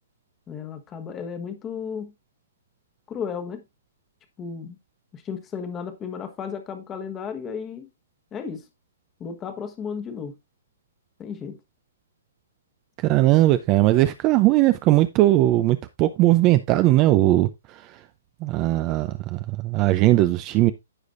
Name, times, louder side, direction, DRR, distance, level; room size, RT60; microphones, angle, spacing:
voice 1, 0.5-2.1 3.1-3.6 4.4-4.8 5.1-7.9 8.3-8.7 9.2-10.3 11.2-11.6, left 6 dB, 15° left, 1.2 m, -34 dB
voice 2, 13.0-17.5 18.4-20.7, right 16 dB, 25° right, 0.5 m, -19 dB
14.5 x 4.9 x 2.5 m
hypercardioid pair, 155°, 0 cm